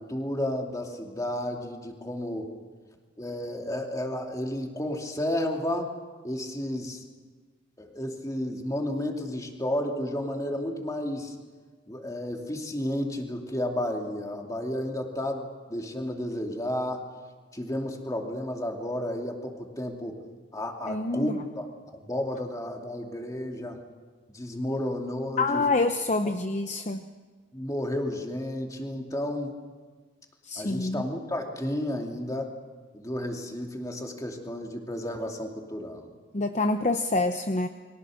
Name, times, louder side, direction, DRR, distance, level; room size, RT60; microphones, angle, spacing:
voice 1, 0.0-2.5 3.2-5.9 6.2-7.0 7.8-11.4 11.9-17.0 17.5-20.2 20.5-23.8 24.3-25.7 26.2-26.3 27.5-29.6 30.6-32.5 32.9-36.1, left 1 dB, 15° left, 2 dB, 2.6 m, -32 dB
voice 2, 20.9-21.3 25.4-27.0 30.5-31.0 36.3-37.7, left 3 dB, 35° left, 7 dB, 0.8 m, -26 dB
29.5 x 23.5 x 6.5 m, 1.5 s
head